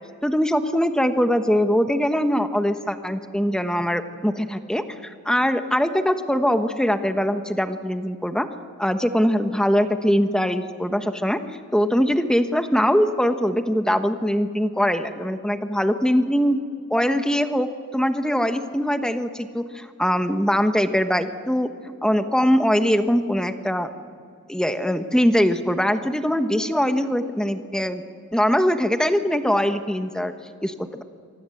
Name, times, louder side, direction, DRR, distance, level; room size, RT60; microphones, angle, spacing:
voice 1, 0.2-8.5 8.8-11.4 11.7-16.6 16.9-23.9 24.5-28.0 28.3-30.3 30.6-31.0, equal, 5° left, 7 dB, 1.2 m, -22 dB
27.5 x 24.5 x 7.9 m, 2.3 s
head